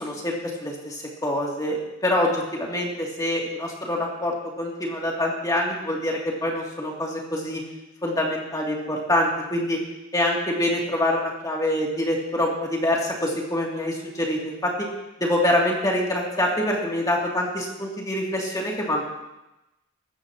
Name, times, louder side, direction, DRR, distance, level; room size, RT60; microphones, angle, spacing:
voice 1, 0.0-7.6 8.0-9.8 10.1-14.9 15.2-19.0, left 1 dB, 15° left, -2 dB, 2.8 m, -25 dB
23.5 x 13.0 x 3.0 m, 0.96 s
head